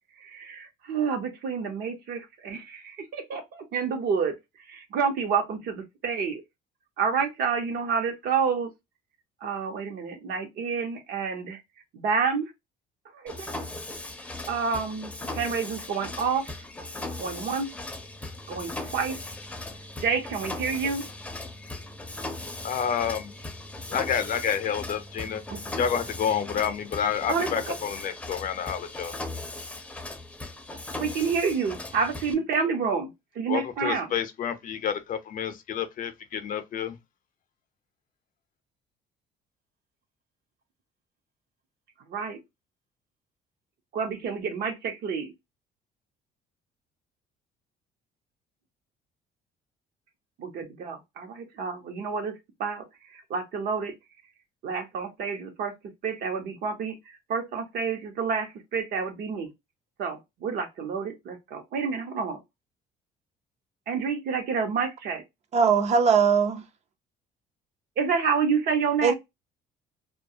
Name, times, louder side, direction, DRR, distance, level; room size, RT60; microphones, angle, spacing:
voice 1, 0.2-4.3 4.7-6.4 7.0-8.7 9.4-11.6 11.9-12.5 13.1-13.5 14.5-16.4 17.2-17.7 18.5-19.2 20.0-21.0 25.5-25.6 27.3-27.7 31.0-34.1 42.1-42.4 43.9-45.3 50.4-52.3 52.6-53.9 54.6-55.7 56.0-59.5 60.0-62.4 63.9-65.2 68.0-69.1, right 5 dB, 65° right, 0.8 m, -29 dB
Mechanisms, 13.3-32.3, left 2 dB, 10° left, 0.5 m, -38 dB
voice 2, 22.6-23.4 23.9-25.4 25.8-29.2 33.5-37.0, left 8 dB, 55° left, 0.6 m, -29 dB
voice 3, 65.5-66.6 69.0-69.1, right 6 dB, 40° right, 0.5 m, -20 dB
2.3 x 2.3 x 2.7 m
cardioid pair, 110°, 17 cm